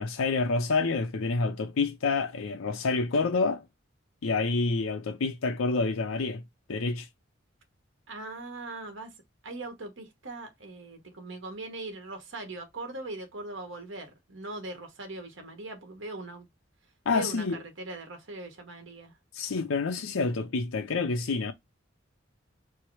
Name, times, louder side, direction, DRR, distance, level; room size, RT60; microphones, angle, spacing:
voice 1, 0.0-3.6 4.2-6.4 6.7-7.1 17.1-17.6 19.3-21.5, left 4 dB, 90° left, 0.6 m, -28 dB
voice 2, 8.1-9.1 9.4-16.5 17.1-19.1, right 2 dB, 70° right, 1.3 m, -40 dB
4.6 x 2.0 x 4.6 m
head